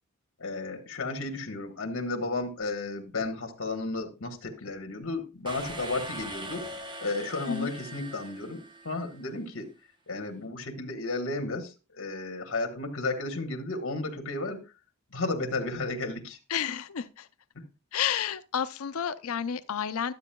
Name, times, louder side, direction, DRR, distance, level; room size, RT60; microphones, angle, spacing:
voice 1, 0.4-6.7 7.0-9.7 10.1-14.6 15.1-16.4 17.5-17.7, left 2 dB, 65° left, 1.4 m, -33 dB
sound 1, 5.5-9.2, right 1 dB, 20° right, 0.8 m, -41 dB
voice 2, 16.5-17.3 17.9-20.1, left 8 dB, 85° left, 0.5 m, -30 dB
12.0 x 8.1 x 2.3 m
head